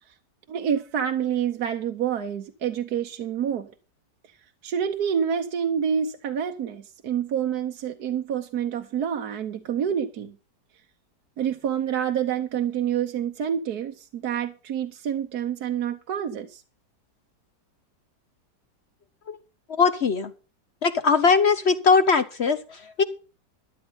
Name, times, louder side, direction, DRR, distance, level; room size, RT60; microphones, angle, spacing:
voice 1, 0.5-3.7 4.6-10.4 11.4-16.6, right 8 dB, 65° right, 1.4 m, -27 dB
voice 2, 19.7-20.3 20.8-23.0, left 5 dB, 50° left, 0.9 m, -20 dB
12.5 x 11.5 x 4.0 m
omnidirectional pair, 1.8 m